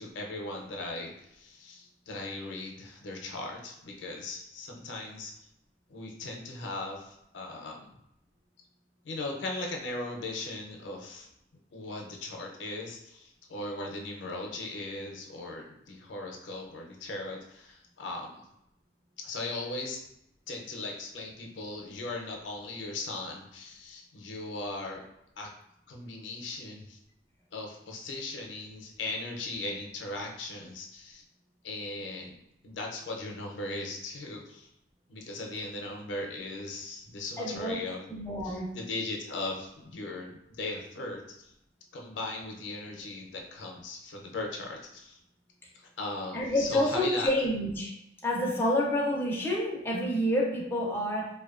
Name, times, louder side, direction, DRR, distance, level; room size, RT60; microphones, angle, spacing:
voice 1, 0.0-5.3 5.9-7.9 9.0-11.3 11.7-18.4 19.2-20.0 20.5-25.0 25.4-25.5 25.9-27.0 27.5-31.2 31.6-32.4 32.6-34.7 35.1-38.1 38.4-41.5 41.9-45.2 46.0-47.3, left 2 dB, 85° left, 0 dB, 0.5 m, -38 dB
voice 2, 37.4-37.8 38.1-38.7 46.3-47.9 48.2-51.3, left 1 dB, 10° left, -3 dB, 0.4 m, -28 dB
2.5 x 2.1 x 2.4 m, 0.79 s
head